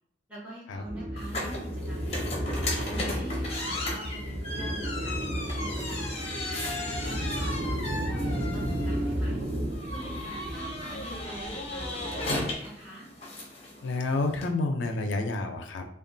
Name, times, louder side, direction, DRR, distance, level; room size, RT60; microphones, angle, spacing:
voice 1, 0.3-2.3 2.9-6.1 6.6-9.4 9.9-13.1, right 1 dB, 10° right, -6 dB, 1.0 m, -44 dB
sound 1, 0.9-12.5, equal, 60° right, 0.6 m, -33 dB
sound 2, 1.2-14.5, left 1 dB, 35° left, 0.6 m, -36 dB
voice 2, 13.8-15.8, left 2 dB, 90° left, 5 dB, 0.4 m, -29 dB
2.9 x 2.2 x 2.6 m, 0.78 s
head